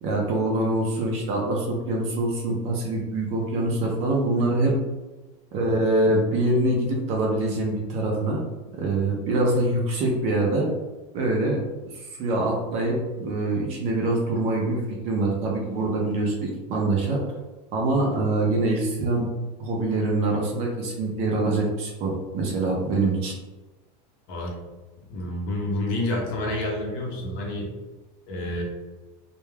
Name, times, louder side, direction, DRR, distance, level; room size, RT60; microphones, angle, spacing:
voice 1, 0.0-4.8 5.5-8.4 8.7-10.7 11.1-17.2 17.7-19.3 19.6-23.3, right 2 dB, 30° right, -1 dB, 0.4 m, -24 dB
voice 2, 25.1-27.7 28.3-28.6, left 1 dB, 40° left, -1 dB, 0.7 m, -28 dB
2.3 x 2.2 x 3.2 m, 1.2 s
supercardioid pair, 170°, 21 cm